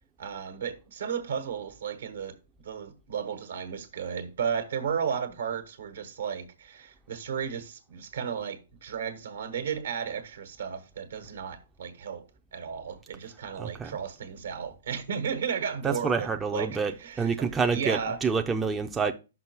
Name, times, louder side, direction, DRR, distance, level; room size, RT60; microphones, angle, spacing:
voice 1, 0.2-2.4 2.6-12.3 12.5-18.2, right 7 dB, 70° right, 1.3 m, -34 dB
voice 2, 13.6-14.0 15.8-19.1, right 5 dB, 10° right, 0.5 m, -28 dB
6.0 x 5.2 x 4.6 m
hypercardioid pair, 130°, 0 cm